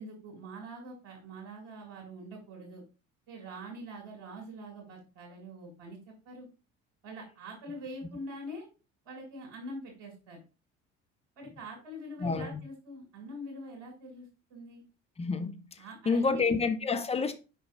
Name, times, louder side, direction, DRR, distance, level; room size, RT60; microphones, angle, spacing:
voice 1, 0.0-2.8 3.3-6.5 7.0-8.7 9.1-10.4 11.4-14.8 15.8-16.7, right 1 dB, 65° right, 2.2 m, -44 dB
voice 2, 12.2-12.6 15.2-15.6 16.1-17.3, left 4 dB, 15° left, 0.9 m, -28 dB
5.9 x 4.9 x 3.7 m
figure-of-eight pair, 55°, 37 cm